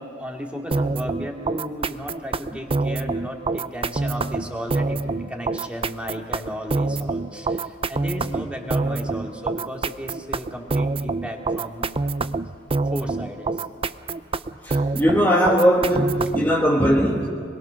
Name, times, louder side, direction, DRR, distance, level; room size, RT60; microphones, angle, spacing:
voice 1, 0.0-11.8 12.8-13.6, equal, 5° right, 2.5 m, -34 dB
sound 1, 0.7-16.6, right 3 dB, 30° right, 0.5 m, -26 dB
voice 2, 14.6-17.3, equal, 10° left, 1.6 m, -19 dB
27.0 x 21.5 x 6.5 m
head